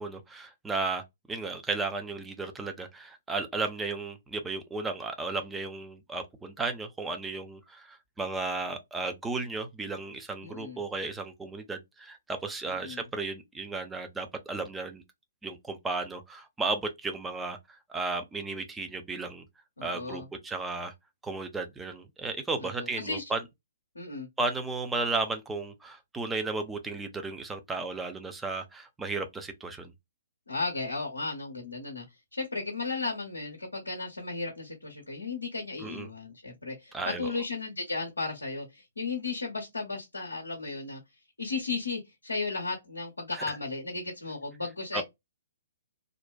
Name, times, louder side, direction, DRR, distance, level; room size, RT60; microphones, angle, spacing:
voice 1, 0.0-15.0 15.4-17.6 17.9-19.4 19.8-20.9 21.2-23.4 24.4-29.9 35.8-36.1 36.9-37.3 43.3-43.4 44.9-45.0, right 3 dB, 10° right, 0.4 m, -34 dB
voice 2, 10.4-10.8 12.7-13.0 19.8-20.3 22.6-23.2 23.9-24.3 30.5-32.0 32.3-41.0 41.4-45.0, left 3 dB, 80° left, 0.6 m, -35 dB
2.5 x 2.1 x 2.3 m
figure-of-eight pair, 125°, 0 cm